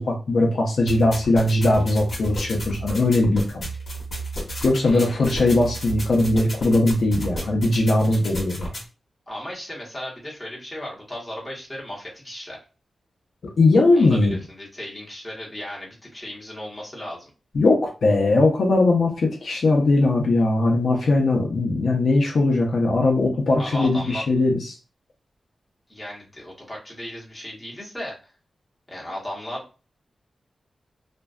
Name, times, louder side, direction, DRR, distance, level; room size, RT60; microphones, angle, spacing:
voice 1, 0.0-3.7 4.6-8.7 13.6-14.4 17.5-24.8, left 2 dB, 65° left, 0 dB, 0.5 m, -20 dB
sound 1, 0.9-8.9, right 1 dB, 45° left, 0.9 m, -33 dB
voice 2, 4.8-5.2 9.3-12.6 13.9-17.2 23.6-24.2 25.9-28.2 28.9-29.7, left 1 dB, 10° left, -4 dB, 0.9 m, -35 dB
2.5 x 2.2 x 2.3 m, 0.32 s
wide cardioid pair, 155°, 0 cm